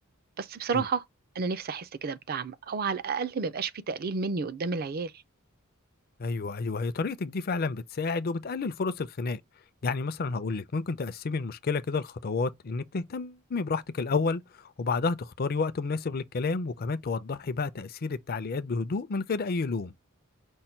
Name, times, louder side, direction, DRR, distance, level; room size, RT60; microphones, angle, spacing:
voice 1, 0.4-1.0 1.4-5.1, right 5 dB, 45° right, 0.5 m, -31 dB
voice 2, 6.2-9.4 9.8-19.9, left 4 dB, 45° left, 0.5 m, -30 dB
5.4 x 2.2 x 4.3 m
head